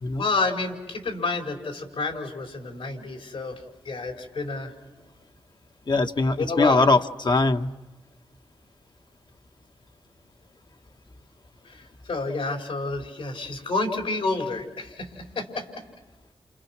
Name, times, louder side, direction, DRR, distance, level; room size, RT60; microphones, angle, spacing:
voice 1, 0.2-3.6 3.8-4.7 6.3-6.8 11.7-15.6, left 3 dB, 80° left, 2 dB, 4.9 m, -29 dB
voice 2, 5.9-7.7, left 3 dB, 50° left, 6 dB, 1.3 m, -21 dB
29.5 x 29.0 x 6.1 m, 1.1 s
cardioid pair, 50°, 10 cm